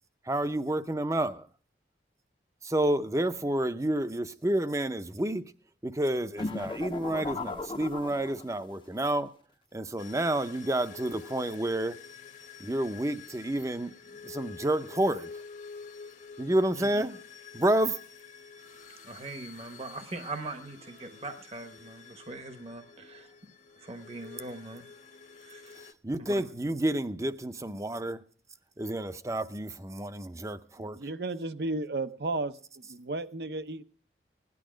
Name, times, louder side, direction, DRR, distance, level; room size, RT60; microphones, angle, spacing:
voice 1, 0.2-1.5 2.6-5.5 5.8-9.3 9.7-12.0 12.6-14.0 14.2-15.3 16.4-17.2 17.5-18.0 25.8-28.2 28.8-31.0, right 1 dB, 15° right, 0.6 m, -29 dB
sound 1, 6.4-8.8, left 3 dB, 30° left, 0.6 m, -36 dB
sound 2, 10.0-25.9, left 5 dB, 45° left, 0.9 m, -48 dB
voice 2, 19.0-23.3 23.8-24.8 25.4-25.8 26.3-26.4, right 2 dB, 35° right, 0.9 m, -41 dB
voice 3, 30.8-32.6 32.9-33.8, right 2 dB, 70° right, 0.7 m, -33 dB
17.0 x 11.0 x 5.0 m
head